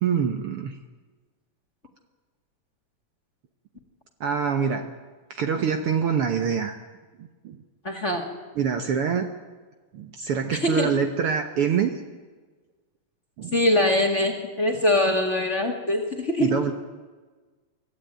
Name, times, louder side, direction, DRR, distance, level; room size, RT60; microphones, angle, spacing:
voice 1, 0.0-0.8 4.2-4.9 5.3-6.8 7.2-7.6 8.6-9.3 9.9-11.9 13.4-13.6 16.4-16.7, right 7 dB, 60° right, 6 dB, 1.7 m, -25 dB
voice 2, 7.8-8.3 10.5-10.9 13.5-16.5, left 1 dB, 25° left, 2 dB, 1.9 m, -23 dB
24.0 x 14.5 x 9.0 m, 1.4 s
omnidirectional pair, 3.4 m